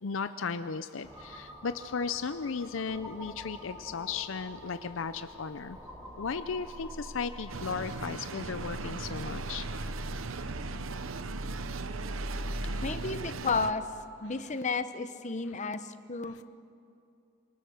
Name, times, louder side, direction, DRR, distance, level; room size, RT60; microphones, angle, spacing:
voice 1, 0.0-5.8 6.2-9.7 12.5-12.8 15.5-15.6 16.2-16.4, left 5 dB, 70° left, 11 dB, 0.6 m, -36 dB
sound 1, 1.0-13.3, equal, 10° right, 3.6 m, -42 dB
sound 2, 7.5-13.7, right 4 dB, 80° right, 0.8 m, -39 dB
voice 2, 12.8-13.8 14.2-16.4, left 4 dB, 35° left, 10 dB, 0.9 m, -32 dB
25.5 x 24.0 x 6.5 m, 2.5 s
head